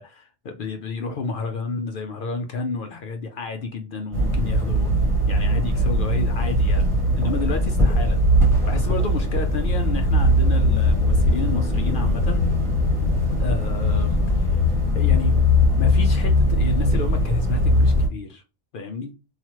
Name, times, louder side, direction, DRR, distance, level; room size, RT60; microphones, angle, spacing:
voice 1, 0.0-4.9 5.3-6.9 7.1-8.2 8.7-12.5 13.4-14.6 14.9-15.4 15.7-18.4 18.7-19.1, left 4 dB, 60° left, 0.5 m, -31 dB
sound 1, 4.1-18.1, left 1 dB, 25° right, 0.9 m, -20 dB
2.9 x 2.4 x 2.9 m
omnidirectional pair, 1.3 m